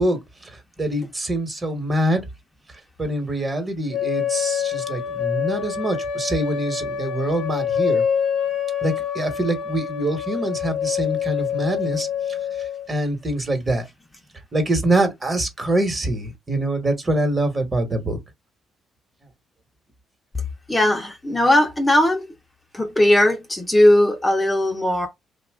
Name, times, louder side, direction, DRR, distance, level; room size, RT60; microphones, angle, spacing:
voice 1, 0.0-2.2 3.0-8.0 8.8-12.1 12.9-13.8 14.5-18.2, right 1 dB, 30° right, 1.3 m, -24 dB
sound 1, 3.9-12.9, left 8 dB, 60° left, 0.8 m, -26 dB
voice 2, 20.7-22.3 22.7-25.1, left 1 dB, 15° left, 0.7 m, -18 dB
2.9 x 2.4 x 3.5 m
cardioid pair, 90°, 0 cm